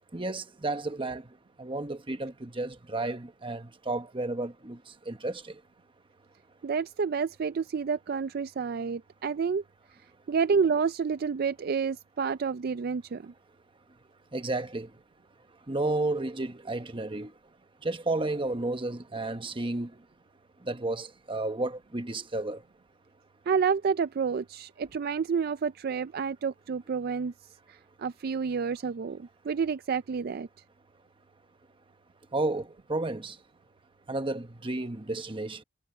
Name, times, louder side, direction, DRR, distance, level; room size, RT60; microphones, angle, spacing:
voice 1, 0.1-1.2 1.6-4.8 5.1-5.5 14.3-14.9 15.7-17.3 17.8-19.9 20.6-22.6 32.3-33.4 34.1-35.6, right 2 dB, 25° right, 1.1 m, -32 dB
voice 2, 6.6-9.6 10.3-13.3 23.5-27.3 27.7-30.5, right 6 dB, 50° right, 0.4 m, -29 dB
head